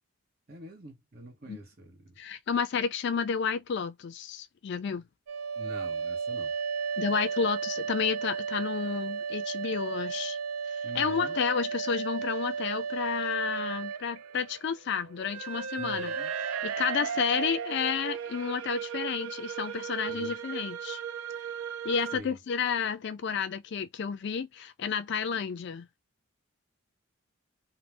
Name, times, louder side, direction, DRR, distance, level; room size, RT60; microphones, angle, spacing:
voice 1, 0.5-2.1 5.6-6.5 10.8-11.4 15.8-16.3 20.1-20.4 22.1-22.4, right 1 dB, 45° right, 0.9 m, -45 dB
voice 2, 2.2-5.0 7.0-10.4 10.9-16.1 16.6-21.0 21.8-25.9, left 6 dB, 55° left, 0.3 m, -31 dB
sound 1, 5.3-22.2, right 6 dB, 85° right, 0.4 m, -35 dB
2.6 x 2.0 x 3.2 m
head